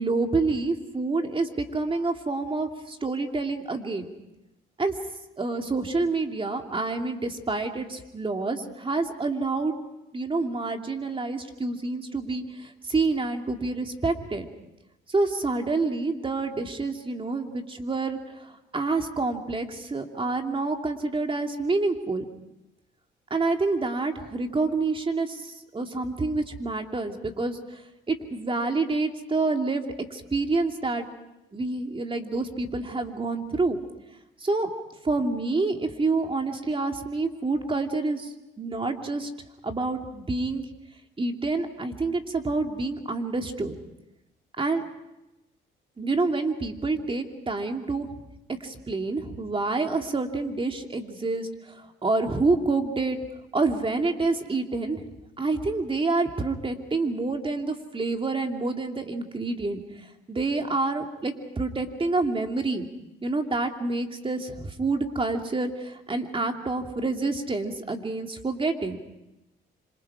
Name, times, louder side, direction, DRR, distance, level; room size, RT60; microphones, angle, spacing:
voice 1, 0.0-4.1 4.8-4.9 5.4-9.7 10.1-14.4 15.1-22.2 23.3-27.8 28.1-31.1 31.5-33.8 34.4-34.7 35.0-39.3 39.6-40.6 41.2-43.8 44.6-44.8 46.0-48.1 48.6-53.2 53.5-55.0 55.4-59.8 60.3-62.9 63.2-69.0, right 3 dB, 25° right, 4 dB, 2.8 m, -28 dB
26.5 x 26.5 x 5.0 m, 0.93 s
cardioid pair, 90°, 20 cm